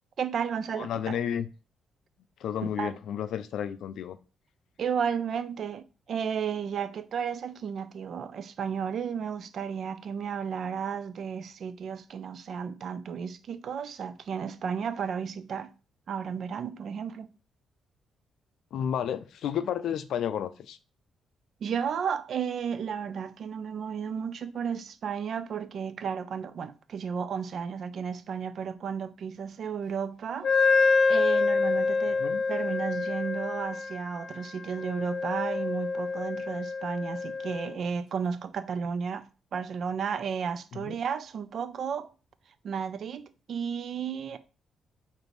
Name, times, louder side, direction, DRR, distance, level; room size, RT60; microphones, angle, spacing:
voice 1, 0.2-1.2 2.8-2.9 4.8-15.7 16.1-17.3 21.6-32.2 32.5-42.1 42.6-44.4, right 7 dB, 65° right, 0.4 m, -33 dB
voice 2, 0.8-1.5 2.4-4.2 18.7-20.8 32.2-32.4 40.7-41.0, left 9 dB, 80° left, 0.4 m, -32 dB
Wind instrument woodwind instrument, 30.4-37.8, left 4 dB, 60° left, 0.8 m, -27 dB
5.0 x 2.7 x 3.1 m
cardioid pair, 85°, 0 cm